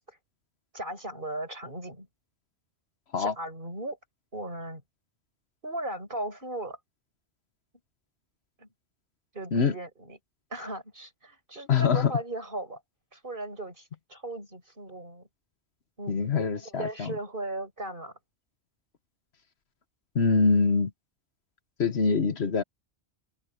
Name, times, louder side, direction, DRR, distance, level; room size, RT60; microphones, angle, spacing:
voice 1, 0.7-2.1 3.2-4.0 4.3-4.8 5.6-6.8 8.6-8.7 9.3-10.2 10.5-12.8 13.1-15.3 16.0-18.1, right 1 dB, 50° right, 6.1 m, -37 dB
voice 2, 11.7-12.1 16.1-17.1 20.1-20.9 21.8-22.6, left 5 dB, 70° left, 1.5 m, -24 dB
open air
omnidirectional pair, 1.1 m